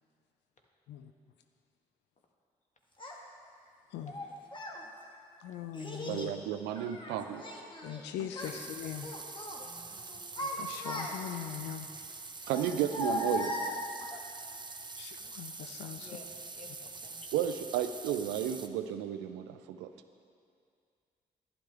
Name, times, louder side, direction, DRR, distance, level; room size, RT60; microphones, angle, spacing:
Child speech kid speaking, 3.0-3.1 4.1-4.8 5.7-6.3 6.8-8.0 8.3-8.6 9.0-9.6 10.1-11.5 12.5-14.2, left 1 dB, 30° left, 1.7 m, -38 dB
voice 1, 5.4-6.3 7.8-9.1 10.4-11.9 15.0-16.2, left 10 dB, 80° left, 7 dB, 0.4 m, -41 dB
voice 2, 6.1-7.4 12.5-13.6 17.3-19.9, right 10 dB, 90° right, 9 dB, 0.4 m, -33 dB
sound 1, 8.4-18.7, right 4 dB, 25° right, 0.7 m, -45 dB
voice 3, 9.6-10.1 15.2-15.4 16.0-16.3 16.6-17.2, left 3 dB, 45° left, 0 dB, 1.7 m, -53 dB
11.5 x 11.0 x 3.4 m, 2.3 s
hypercardioid pair, 40°, 17 cm